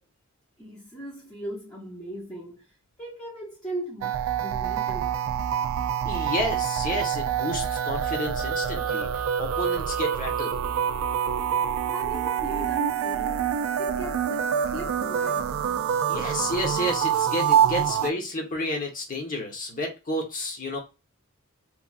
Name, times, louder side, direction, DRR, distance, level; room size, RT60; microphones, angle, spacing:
voice 1, 0.6-5.2 11.9-15.6, right 1 dB, 15° left, 0.9 m, -39 dB
sound 1, 4.0-18.1, right 8 dB, 70° right, 0.3 m, -26 dB
voice 2, 6.0-10.6 16.1-20.8, left 1 dB, 40° left, 1.1 m, -31 dB
3.2 x 2.5 x 2.4 m
head